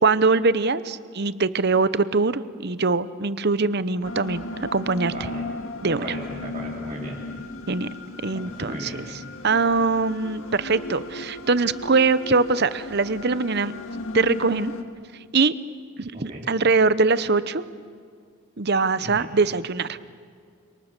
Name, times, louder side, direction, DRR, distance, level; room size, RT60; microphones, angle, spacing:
voice 1, 0.0-5.1 5.8-6.0 7.7-7.9 8.2-9.1 9.4-13.8 14.1-14.7 15.3-15.5 16.0-17.6 18.6-20.0, right 4 dB, 45° right, 15 dB, 0.8 m, -22 dB
sound 1, 4.0-14.8, left 2 dB, 65° left, 2.0 m, -36 dB
voice 2, 5.1-5.5 5.8-7.2 8.4-9.0 16.1-16.5 19.0-19.3, right 1 dB, 30° right, -6 dB, 4.2 m, -36 dB
29.5 x 26.5 x 6.8 m, 2.1 s
head